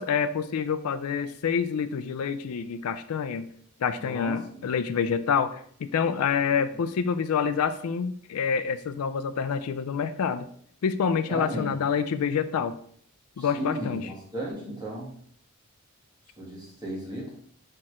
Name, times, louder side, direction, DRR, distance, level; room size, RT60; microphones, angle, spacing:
voice 1, 0.0-3.5 3.8-10.5 10.8-12.8 13.4-14.1, left 6 dB, 75° left, 11 dB, 0.4 m, -27 dB
voice 2, 4.0-4.6 11.3-11.7 13.4-15.1 16.4-17.3, right 1 dB, 20° right, -5 dB, 2.0 m, -35 dB
4.5 x 4.3 x 4.8 m, 0.62 s
head